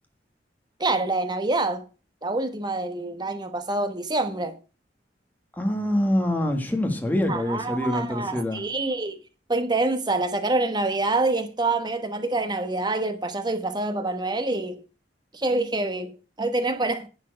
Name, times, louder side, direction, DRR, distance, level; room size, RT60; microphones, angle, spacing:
voice 1, 0.8-1.8 2.2-4.5 7.3-9.2 9.5-14.8 15.3-17.1, right 2 dB, 25° right, 1.1 m, -26 dB
voice 2, 5.6-8.6, left 1 dB, 10° left, 1.7 m, -25 dB
11.0 x 4.6 x 7.9 m
head